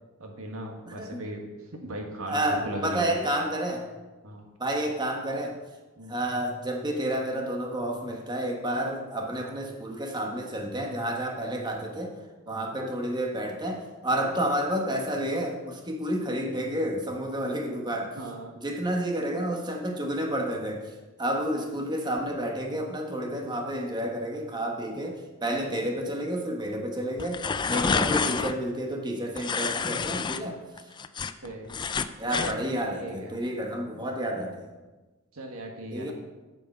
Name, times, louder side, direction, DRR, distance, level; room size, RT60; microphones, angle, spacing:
voice 1, 0.2-1.5 1.7-3.1 4.2-4.5 6.0-6.1 12.5-12.7 18.2-18.6 31.4-31.7 32.3-33.3 35.3-36.1, right 1 dB, 80° right, 2 dB, 1.7 m, -38 dB
voice 2, 0.9-1.2 2.3-3.9 4.6-5.6 6.1-12.1 12.5-18.1 18.6-20.9 21.2-30.6 32.2-34.7 35.9-36.1, right 1 dB, 20° right, 2 dB, 1.2 m, -30 dB
sound 1, 27.2-28.5 29.4-30.4 30.8-32.5, left 5 dB, 20° left, 0.3 m, -28 dB
8.5 x 6.9 x 5.4 m, 1.2 s
head